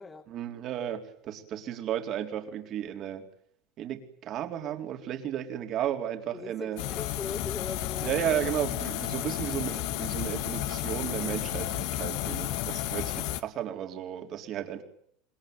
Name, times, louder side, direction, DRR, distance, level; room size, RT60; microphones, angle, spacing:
voice 1, 0.3-3.3 3.8-6.8 8.0-14.8, right 10 dB, 50° right, 5 dB, 3.8 m, -34 dB
voice 2, 6.3-8.1, left 4 dB, 20° left, 0 dB, 2.8 m, -40 dB
sound 1, 6.8-13.4, left 13 dB, 70° left, 1.8 m, -32 dB
26.5 x 21.0 x 9.2 m, 0.68 s
supercardioid pair, 110°, 0 cm